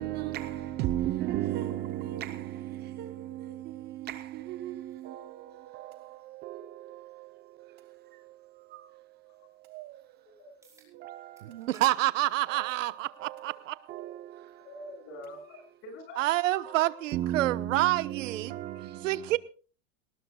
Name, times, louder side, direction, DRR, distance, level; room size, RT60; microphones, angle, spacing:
voice 1, 0.0-10.4 10.9-11.7 12.5-14.7 16.5-19.4, right 13 dB, 25° right, 0.7 m, -37 dB
voice 2, 3.4-3.8 6.6-6.9 9.4-9.5 10.4-10.5 13.4-13.5 14.6-16.5, left 1 dB, 35° left, 7.2 m, -47 dB
sound 1, 10.6-10.9 11.4-11.9 12.3-12.5 13.6-13.7 18.6-18.7, right 4 dB, 10° right, 5.2 m, -59 dB
voice 3, 11.4-13.7 16.2-18.6 19.0-19.4, right 16 dB, 80° right, 1.1 m, -28 dB
23.0 x 19.0 x 2.3 m
supercardioid pair, 160°, 38 cm